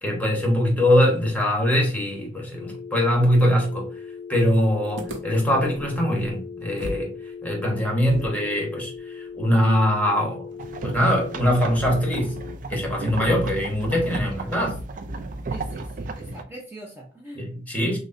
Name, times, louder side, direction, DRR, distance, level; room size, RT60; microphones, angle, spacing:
voice 1, 0.0-3.9 4.3-7.1 7.4-10.4 10.8-12.3 12.7-14.8 17.3-18.0, equal, 10° left, 1.1 m, -22 dB
Dial Tone, 2.5-12.6, left 6 dB, 25° left, 0.4 m, -39 dB
sound 1, 5.0-7.1 7.4-7.5 8.0-11.2, equal, 75° right, 0.8 m, -40 dB
sound 2, 10.6-16.4, right 3 dB, 45° right, 0.4 m, -33 dB
voice 2, 15.5-17.5, right 1 dB, 10° right, 0.7 m, -42 dB
6.2 x 2.2 x 2.6 m
head